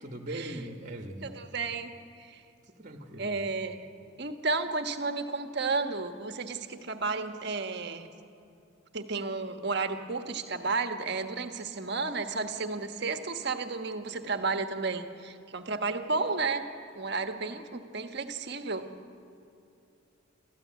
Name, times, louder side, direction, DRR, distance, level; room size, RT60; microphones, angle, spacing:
voice 1, 0.0-1.3 2.8-3.4, right 1 dB, 40° right, 5 dB, 1.6 m, -40 dB
voice 2, 1.2-2.4 3.2-3.8 4.2-8.1 8.9-16.6 17.0-18.8, right 3 dB, 55° right, 7 dB, 1.4 m, -32 dB
26.5 x 14.0 x 9.5 m, 2.7 s
head